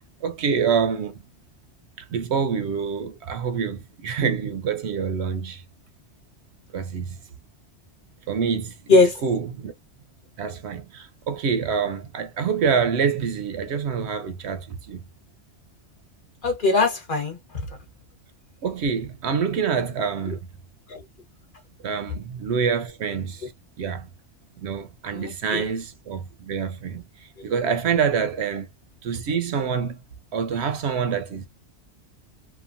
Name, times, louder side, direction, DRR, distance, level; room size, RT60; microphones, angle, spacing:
voice 1, 0.2-1.2 2.0-5.6 6.7-7.2 8.3-8.7 9.2-9.7 10.4-15.0 18.6-20.4 21.8-23.5 23.8-24.1 24.6-28.7 29.0-30.0 30.3-31.5, right 6 dB, 65° right, 0.8 m, -26 dB
voice 2, 8.9-9.2 16.4-17.4 20.3-20.4 20.9-21.0 25.1-25.7 27.4-27.5, left 3 dB, 45° left, 1.0 m, -21 dB
2.9 x 2.2 x 2.4 m
omnidirectional pair, 1.3 m